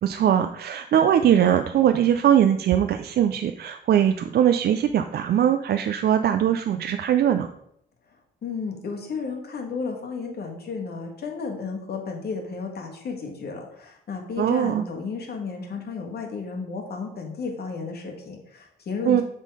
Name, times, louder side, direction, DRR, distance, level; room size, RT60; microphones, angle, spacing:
voice 1, 0.0-7.5 14.4-14.8 19.1-19.2, right 10 dB, 55° right, 8 dB, 0.4 m, -21 dB
voice 2, 8.4-19.2, left 4 dB, 55° left, 1 dB, 1.7 m, -33 dB
7.4 x 3.8 x 4.8 m, 0.73 s
cardioid pair, 90°, 20 cm